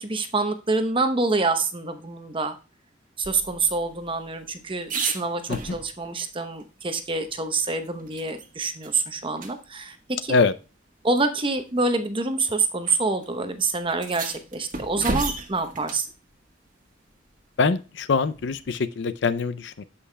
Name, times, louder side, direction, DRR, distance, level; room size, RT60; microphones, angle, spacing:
voice 1, 0.0-2.5 3.2-10.0 10.2-10.3 11.0-16.1, right 3 dB, 30° right, 8 dB, 0.9 m, -26 dB
sound 1, 3.2-6.2 6.6-6.7 7.0-8.5 8.8-9.0 9.4-9.5 10.6-10.7 11.6-11.8 12.8-13.0 13.2-13.3 13.9-16.1 18.4-18.8, right 3 dB, 45° right, 1.4 m, -34 dB
voice 2, 17.6-19.8, left 4 dB, 65° left, 13 dB, 0.5 m, -23 dB
14.5 x 5.6 x 2.2 m, 0.32 s
head